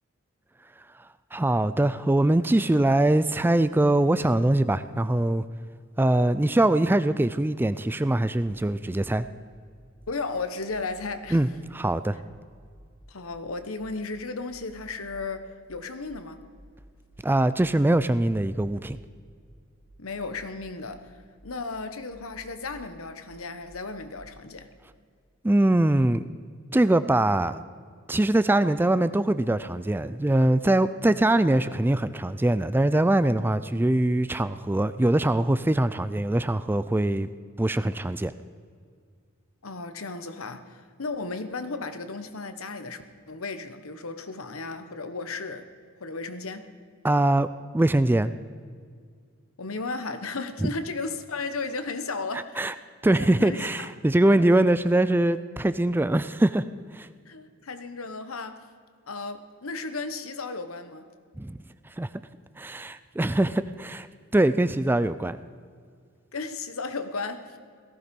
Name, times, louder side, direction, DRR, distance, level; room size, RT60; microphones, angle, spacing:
voice 1, 1.0-5.4 6.0-9.3 11.3-12.2 17.2-19.0 25.4-26.3 26.7-27.6 28.1-37.3 37.6-38.3 47.0-47.5 47.7-48.3 50.6-50.7 52.3-52.7 53.0-56.6 56.9-57.1 61.4-61.6 61.9-62.1 62.6-64.1 64.3-65.4, right 1 dB, 10° right, 0.3 m, -23 dB
sound 1, 8.4-24.3, equal, 60° right, 3.4 m, -54 dB
voice 2, 10.1-11.4 13.1-16.4 20.0-21.1 21.4-24.7 39.6-45.7 46.0-46.7 49.6-52.6 53.2-53.9 57.3-58.7 59.1-61.1 66.3-67.6, left 3 dB, 75° left, 1.2 m, -35 dB
17.5 x 15.0 x 5.3 m
head